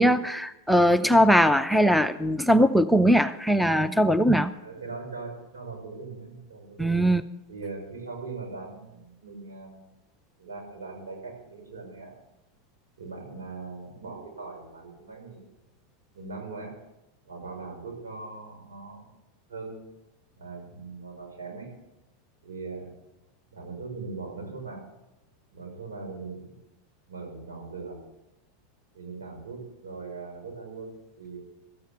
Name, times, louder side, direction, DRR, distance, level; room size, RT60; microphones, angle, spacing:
voice 1, 0.0-4.5 6.8-7.2, equal, ahead, 13 dB, 0.6 m, -20 dB
voice 2, 4.6-7.0 7.5-9.9 10.4-12.1 13.0-15.4 16.1-16.7 17.2-19.1 19.5-19.8 20.4-21.7 22.4-22.9 23.5-24.8 25.5-26.5 27.1-28.0 28.9-31.4, right 4 dB, 80° right, 0 dB, 5.8 m, -40 dB
14.0 x 9.2 x 8.2 m, 0.94 s
hypercardioid pair, 90°, 0 cm